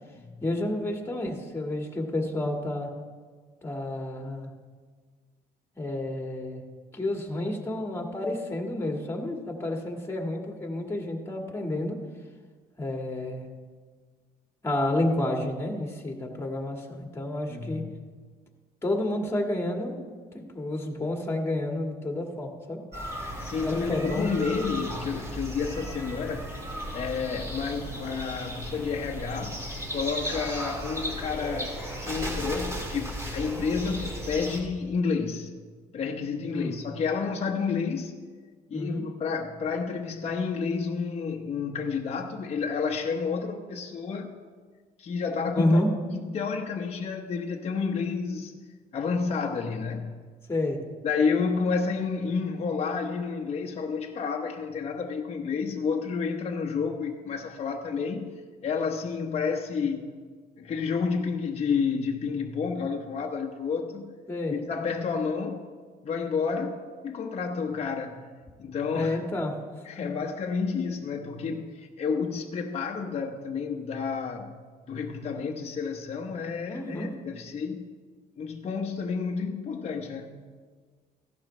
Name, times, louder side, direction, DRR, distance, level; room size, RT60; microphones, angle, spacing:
voice 1, 0.4-2.9 3.6-4.5 5.7-6.6 6.9-12.0 12.8-13.5 14.6-17.8 18.8-19.9 20.3-22.8 23.6-24.3 36.5-36.8 38.7-39.0 45.6-45.9 50.5-50.8 64.3-64.5 68.9-69.5 76.7-77.1, left 1 dB, 15° left, 2 dB, 1.7 m, -30 dB
voice 2, 17.5-18.1 23.2-26.6 26.9-29.6 29.9-31.7 32.0-35.5 35.9-38.1 38.7-44.3 45.0-45.8 46.2-48.5 48.9-50.2 51.0-58.3 58.6-60.1 60.6-64.1 64.5-65.7 66.0-68.3 68.6-69.2 69.8-74.6 74.9-77.8 78.4-80.4, left 5 dB, 40° left, 1 dB, 1.0 m, -30 dB
sound 1, 22.9-34.6, equal, 15° right, 4.3 m, -35 dB
15.5 x 11.5 x 3.3 m, 1.5 s
cardioid pair, 110°, 17 cm